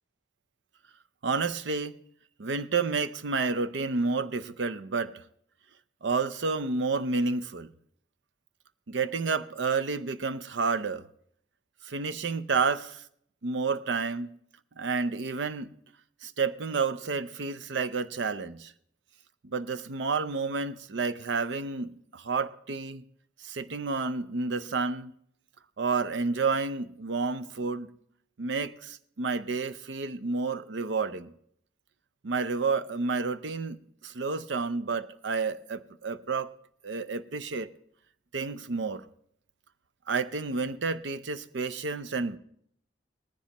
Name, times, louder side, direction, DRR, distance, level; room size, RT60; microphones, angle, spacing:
voice 1, 1.2-2.0 2.4-5.2 6.0-7.7 8.9-11.0 11.8-13.0 13.4-14.3 14.8-15.7 16.2-18.7 19.4-23.0 23.4-25.1 25.8-27.9 28.4-31.3 32.2-36.5 36.8-37.7 38.3-39.0 40.1-42.4, right 4 dB, 75° right, 0.6 m, -30 dB
18.5 x 14.5 x 3.0 m
head